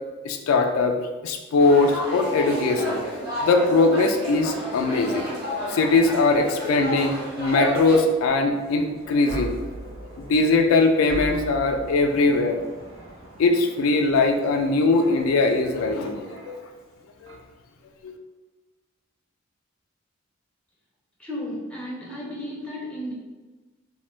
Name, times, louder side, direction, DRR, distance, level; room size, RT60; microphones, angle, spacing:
voice 1, 0.2-1.0 1.2-3.0 3.4-5.3 5.7-9.5 10.3-12.6 13.4-16.5 18.0-18.1, left 3 dB, 85° left, 5 dB, 0.3 m, -21 dB
sound 1, 1.6-8.0, equal, 50° right, 1.0 m, -31 dB
sound 2, 5.9-16.9 17.3-17.5, right 1 dB, 70° right, 0.6 m, -41 dB
voice 2, 21.2-23.1, left 1 dB, 5° left, -4 dB, 0.5 m, -33 dB
2.6 x 2.1 x 3.1 m, 1.2 s
head